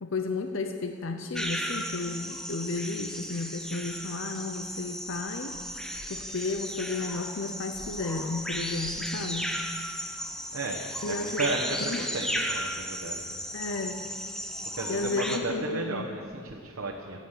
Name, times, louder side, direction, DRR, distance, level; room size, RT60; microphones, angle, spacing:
voice 1, 0.0-5.6 6.1-9.6 11.0-11.5 11.9-12.0 13.5-14.1 14.9-16.1, left 3 dB, 65° left, 6 dB, 0.7 m, -33 dB
sound 1, 1.3-15.4, equal, 5° left, 0.9 m, -35 dB
voice 2, 8.9-9.3 10.5-13.5 14.6-17.2, right 2 dB, 75° right, -2 dB, 1.2 m, -34 dB
15.5 x 9.4 x 6.7 m, 2.2 s
head